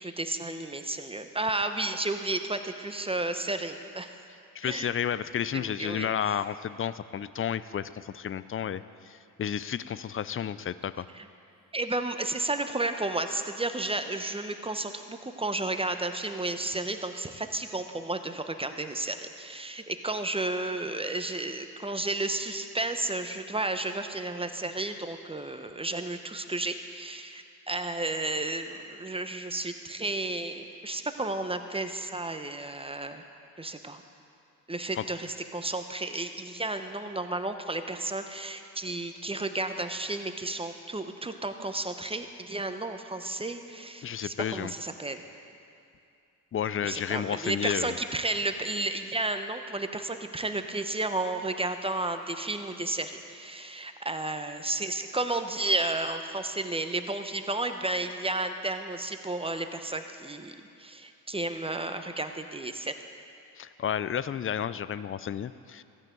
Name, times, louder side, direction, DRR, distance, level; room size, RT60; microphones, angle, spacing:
voice 1, 0.0-4.2 4.6-5.0 5.5-6.1 11.1-11.3 11.7-33.2 33.6-34.0 34.7-45.2 46.8-63.0, right 2 dB, 15° right, 7 dB, 1.0 m, -32 dB
voice 2, 4.5-11.1 35.0-35.1 44.0-44.7 46.5-48.0 63.6-65.8, left 9 dB, 30° left, 15 dB, 0.5 m, -32 dB
15.5 x 14.0 x 3.9 m, 2.6 s
hypercardioid pair, 50°, 44 cm